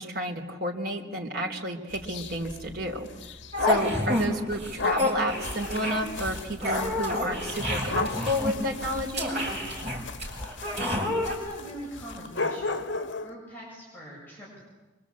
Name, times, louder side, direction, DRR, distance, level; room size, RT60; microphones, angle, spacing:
voice 1, 0.0-3.1 3.6-9.4, equal, 50° right, 1 dB, 3.7 m, -31 dB
sound 1, 1.9-4.0 4.8-13.3, left 3 dB, 70° left, 1.5 m, -35 dB
sound 2, 3.5-4.2 4.5-11.3, left 1 dB, 35° right, 6.8 m, -29 dB
voice 2, 11.2-12.8 13.2-14.6, right 1 dB, 10° left, -5 dB, 7.9 m, -42 dB
25.0 x 25.0 x 8.6 m, 1.2 s
head